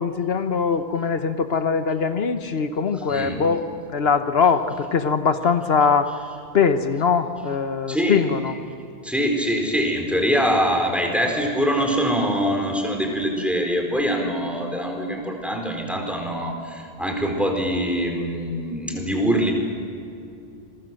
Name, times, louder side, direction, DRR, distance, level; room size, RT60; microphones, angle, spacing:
voice 1, 0.0-3.6 3.9-6.1 6.5-8.6, left 6 dB, 75° left, 9 dB, 1.2 m, -21 dB
voice 2, 3.1-3.5 7.9-8.2 9.0-19.5, equal, ahead, 2 dB, 4.4 m, -23 dB
27.0 x 22.0 x 7.7 m, 2.6 s
omnidirectional pair, 1.0 m